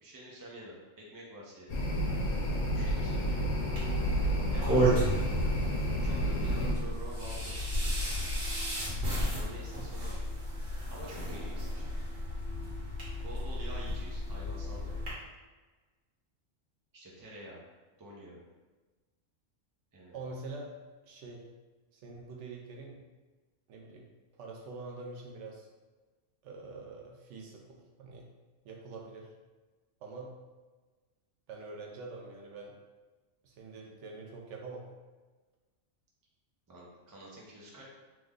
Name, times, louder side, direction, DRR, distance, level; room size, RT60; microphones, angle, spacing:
voice 1, 0.0-1.8 2.7-3.5 4.5-5.0 6.0-7.6 7.9-8.2 9.3-10.2 10.9-11.8 13.2-15.0 16.9-17.6 18.0-18.4 19.9-20.3 36.7-37.8, right 1 dB, 25° right, -4 dB, 0.4 m, -48 dB
sound 1, 1.7-6.7, equal, 90° left, 1.1 m, -30 dB
sound 2, 3.8-15.1, equal, 50° right, 1.2 m, -33 dB
voice 2, 5.3-5.8 20.1-20.7 21.0-21.4 21.9-23.0 23.7-24.1 24.4-25.7 26.4-28.3 28.6-29.3 30.0-30.4 31.5-32.8 33.4-34.9, right 3 dB, 70° right, 0 dB, 0.9 m, -45 dB
3.2 x 2.2 x 3.5 m, 1.3 s
omnidirectional pair, 1.3 m